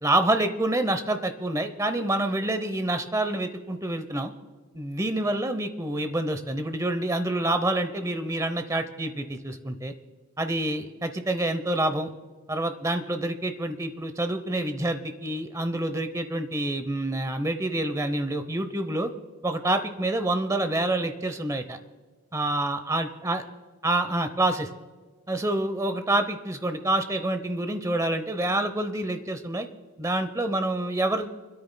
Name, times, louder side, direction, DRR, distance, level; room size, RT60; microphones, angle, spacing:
voice 1, 0.0-4.3 4.7-9.9 10.4-12.1 12.5-19.1 19.4-21.8 22.3-23.4 23.8-24.7 25.3-29.7 30.0-31.3, right 1 dB, 15° right, 9 dB, 0.7 m, -27 dB
28.5 x 13.0 x 2.2 m, 1.4 s
head